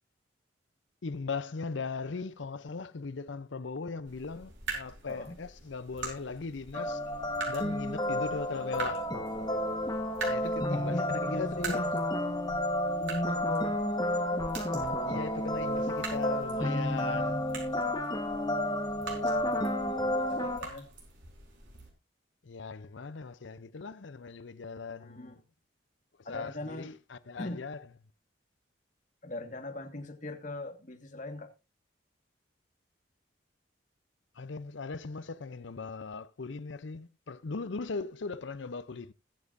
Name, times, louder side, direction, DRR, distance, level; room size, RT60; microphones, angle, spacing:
voice 1, 1.0-7.0 7.5-9.1 10.3-12.0 15.0-17.5 22.4-25.3 26.3-27.8 34.4-39.1, left 4 dB, 75° left, 0.6 m, -39 dB
sound 1, 4.0-21.9, right 4 dB, 75° right, 4.7 m, -45 dB
sound 2, 6.7-20.6, left 1 dB, 20° left, 1.3 m, -31 dB
voice 2, 10.7-11.9 13.0-13.8 19.0-19.6 20.1-20.9 25.0-25.4 26.2-27.0 27.4-27.6 29.2-31.5, left 1 dB, 40° left, 1.8 m, -40 dB
21.0 x 7.3 x 2.6 m
head